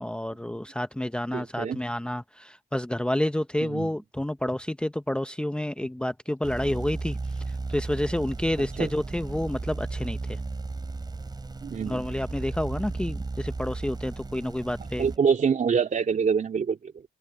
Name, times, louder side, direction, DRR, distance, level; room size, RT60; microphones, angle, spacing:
voice 1, 0.0-10.4 11.9-15.1, left 1 dB, 5° left, 0.8 m, -29 dB
voice 2, 1.3-1.8 3.6-3.9 8.8-8.9 11.6-12.0 15.0-17.0, right 6 dB, 55° right, 3.3 m, -26 dB
sound 1, 6.4-15.2, right 3 dB, 25° right, 3.1 m, -35 dB
cardioid pair, 80°, 16 cm